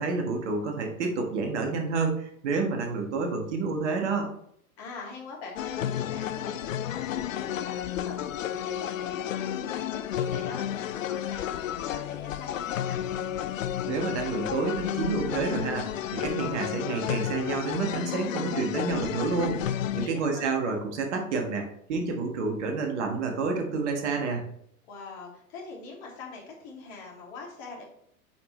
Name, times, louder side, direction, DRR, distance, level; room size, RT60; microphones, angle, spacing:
voice 1, 0.0-4.3 13.9-24.5, right 4 dB, 50° right, 3 dB, 1.6 m, -29 dB
voice 2, 4.8-13.0 20.0-20.5 24.9-27.9, left 3 dB, 45° left, -2 dB, 2.7 m, -43 dB
sound 1, 5.6-20.1, left 11 dB, 65° left, 0.5 m, -32 dB
9.1 x 5.0 x 3.2 m, 0.71 s
figure-of-eight pair, 95°, 43 cm